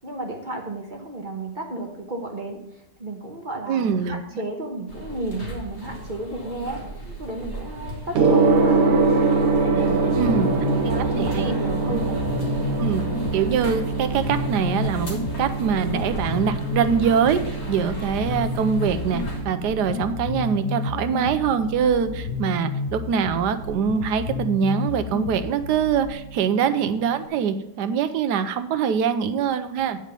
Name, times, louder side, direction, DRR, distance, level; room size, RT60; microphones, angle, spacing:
voice 1, 0.0-2.6 3.0-6.8 7.2-8.9 9.7-12.1, right 2 dB, 35° right, 1 dB, 1.1 m, -32 dB
voice 2, 3.7-4.2 10.1-10.5 11.2-11.5 12.8-13.1 13.3-30.0, right 7 dB, 80° right, 10 dB, 1.2 m, -23 dB
sound 1, 4.9-19.4, equal, 40° left, 2.1 m, -37 dB
Gong, 8.1-27.2, right 4 dB, 60° right, 1.3 m, -26 dB
sound 2, 10.1-26.1, left 5 dB, 85° left, 1.4 m, -31 dB
8.9 x 5.2 x 6.7 m, 0.85 s
omnidirectional pair, 1.8 m